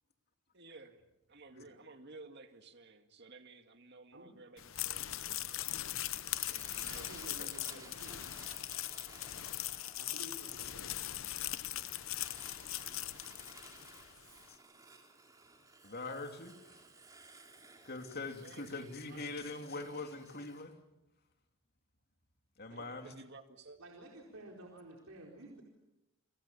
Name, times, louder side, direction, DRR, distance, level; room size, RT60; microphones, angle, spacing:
voice 1, 0.5-6.1 6.5-7.6 18.4-19.6 23.0-23.8, right 3 dB, 50° right, 6 dB, 2.2 m, -55 dB
sound 1, 4.6-14.1, left 13 dB, 65° left, 0.9 m, -40 dB
Fire, 6.0-20.6, right 3 dB, 15° right, 3.6 m, -58 dB
voice 2, 6.9-8.3 10.0-11.0 22.7-22.9 23.8-25.6, right 1 dB, 80° right, 0 dB, 4.4 m, -52 dB
voice 3, 15.8-16.6 17.8-20.8 22.6-23.1, left 3 dB, 45° left, 5 dB, 2.9 m, -42 dB
30.0 x 25.5 x 7.2 m, 0.95 s
head